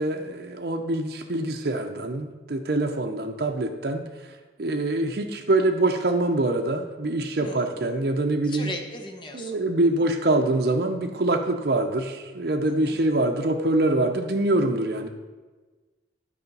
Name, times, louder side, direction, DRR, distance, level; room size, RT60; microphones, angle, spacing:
voice 1, 0.0-4.0 4.6-8.7 9.3-15.1, right 2 dB, 60° right, 3 dB, 0.6 m, -24 dB
voice 2, 7.4-7.7 8.4-9.6 12.6-13.0, left 2 dB, 25° left, 3 dB, 0.9 m, -38 dB
9.5 x 4.9 x 5.4 m, 1.3 s
head